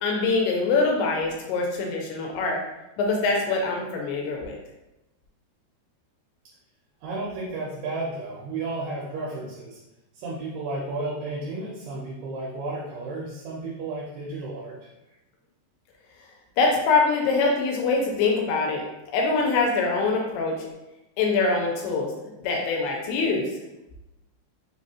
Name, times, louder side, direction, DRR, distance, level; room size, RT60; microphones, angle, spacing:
voice 1, 0.0-2.6 3.0-4.6 16.6-18.8 19.1-20.5 21.2-22.1 22.4-23.5, left 4 dB, 80° left, 0 dB, 2.6 m, -24 dB
voice 2, 7.0-9.8 10.1-14.9, right 2 dB, 75° right, -4 dB, 2.6 m, -33 dB
6.4 x 2.9 x 2.8 m, 0.95 s
omnidirectional pair, 5.0 m